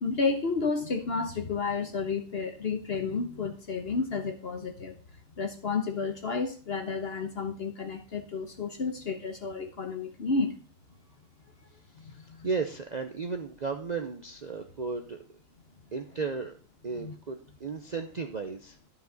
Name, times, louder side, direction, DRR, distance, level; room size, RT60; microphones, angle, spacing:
voice 1, 0.0-4.9 5.4-10.5 12.0-12.5 17.0-17.1, left 4 dB, 50° left, 6 dB, 1.2 m, -31 dB
voice 2, 12.4-15.2 15.9-16.6 16.8-18.8, right 4 dB, 40° right, 5 dB, 0.7 m, -34 dB
13.0 x 5.3 x 3.9 m, 0.39 s
omnidirectional pair, 1.4 m